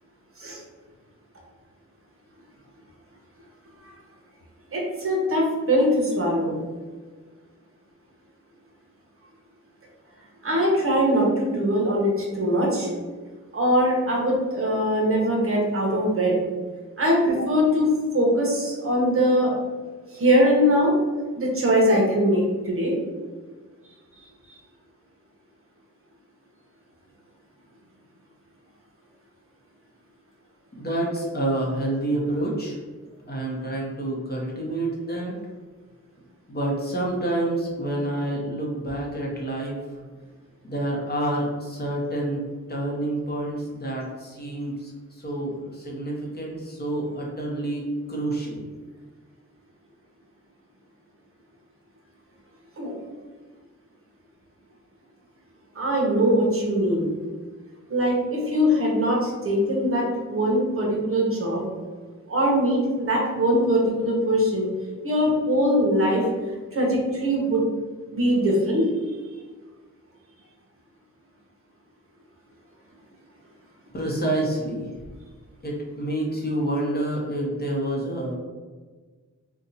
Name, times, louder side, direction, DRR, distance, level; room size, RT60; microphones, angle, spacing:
voice 1, 4.7-6.5 10.4-12.9 13.5-16.3 17.0-17.9 18.1-19.5 20.1-20.9 21.4-22.9 52.8-52.9 55.7-57.1 57.9-61.6 62.3-64.7 65.0-66.3 66.7-67.6 68.1-68.9, equal, 45° right, -2 dB, 0.9 m, -22 dB
voice 2, 30.8-32.8 33.3-35.3 36.5-39.8 40.6-42.4 42.7-47.8 48.1-48.7 73.9-74.9 75.6-78.3, right 1 dB, 30° left, -3 dB, 0.8 m, -28 dB
2.7 x 2.3 x 3.9 m, 1.4 s
wide cardioid pair, 110°, 31 cm